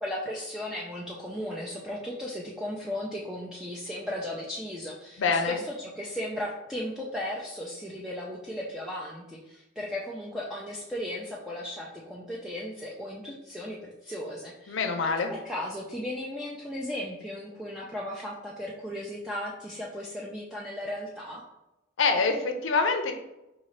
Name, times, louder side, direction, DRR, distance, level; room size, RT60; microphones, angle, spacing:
voice 1, 0.0-21.4, left 1 dB, 5° right, -5 dB, 0.4 m, -36 dB
voice 2, 5.2-5.6 14.7-15.3 22.0-23.1, left 4 dB, 75° left, 5 dB, 0.5 m, -25 dB
4.7 x 2.7 x 3.2 m, 0.92 s
head